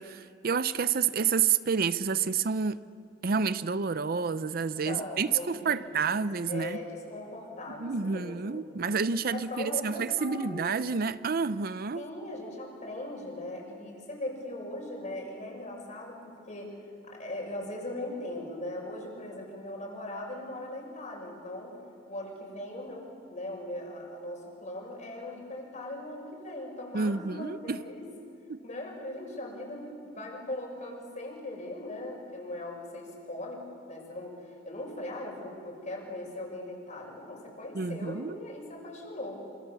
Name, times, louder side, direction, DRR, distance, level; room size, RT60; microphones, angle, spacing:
voice 1, 0.0-2.8 3.2-6.8 7.8-12.1 26.9-27.9 28.5-28.6 37.7-38.4, right 5 dB, 55° right, 0.6 m, -29 dB
voice 2, 4.8-5.9 6.5-8.6 9.3-10.7 11.9-16.7 17.1-21.7 22.1-28.1 28.6-34.4 34.6-39.4, left 1 dB, 40° left, 6.7 m, -39 dB
27.0 x 26.0 x 7.2 m
head